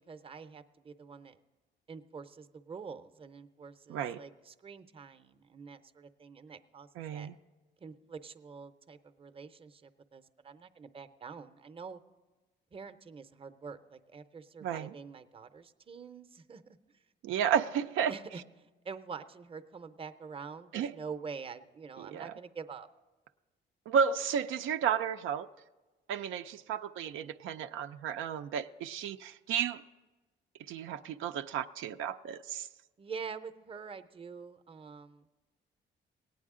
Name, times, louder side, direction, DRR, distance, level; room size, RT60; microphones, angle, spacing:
voice 1, 0.1-1.4 1.9-7.3 7.8-12.0 12.7-16.6 18.1-22.9 33.0-35.3, right 5 dB, 30° right, 9 dB, 0.6 m, -46 dB
voice 2, 3.9-4.2 7.0-7.3 14.6-14.9 17.2-18.1 20.7-20.9 22.0-22.3 23.9-25.5 26.1-29.8 30.7-32.7, right 8 dB, 85° right, 7 dB, 0.4 m, -32 dB
17.5 x 9.2 x 3.7 m, 1.2 s
cardioid pair, 90°, 20 cm